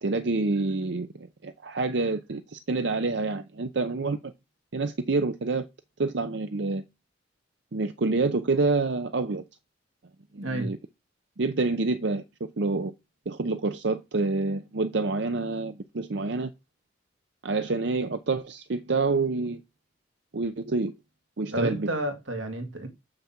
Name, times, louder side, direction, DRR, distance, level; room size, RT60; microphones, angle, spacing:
voice 1, 0.0-4.3 4.7-5.7 6.0-6.8 7.7-9.4 10.3-10.8 11.4-12.9 13.3-16.5 17.4-19.6 20.3-20.9 21.4-21.9, right 3 dB, 65° right, 0.7 m, -27 dB
voice 2, 10.4-10.7 21.5-22.9, right 1 dB, 85° right, 2.2 m, -30 dB
6.6 x 5.7 x 7.3 m
head